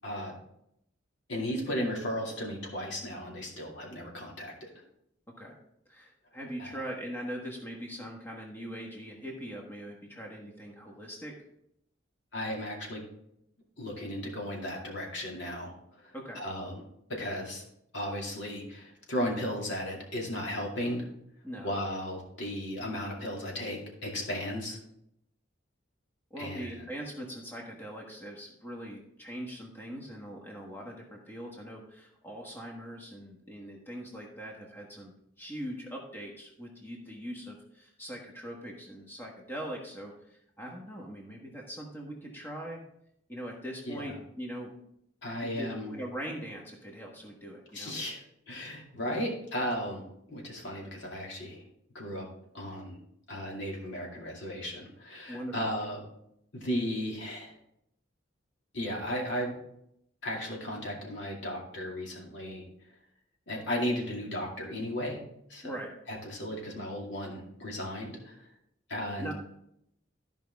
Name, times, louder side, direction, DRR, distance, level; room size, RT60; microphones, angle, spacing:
voice 1, 0.0-0.4 1.3-4.7 6.6-6.7 12.3-13.0 13.8-16.8 17.1-17.6 17.9-21.1 21.6-24.8 26.4-26.7 43.8-44.1 45.2-45.9 47.7-48.2 48.5-51.6 51.9-52.3 52.5-53.0 53.3-56.0 56.5-57.5 58.7-59.6 60.2-62.7 63.5-65.2 65.5-65.7 66.1-68.5 68.9-69.3, equal, 65° left, -2 dB, 2.4 m, -35 dB
voice 2, 5.9-11.3 16.1-16.4 21.4-21.7 26.3-42.8 43.3-44.7 45.4-48.0 55.3-55.7 65.6-65.9 69.2-69.3, equal, 10° left, -1 dB, 1.3 m, -41 dB
13.5 x 5.2 x 3.5 m, 0.76 s
head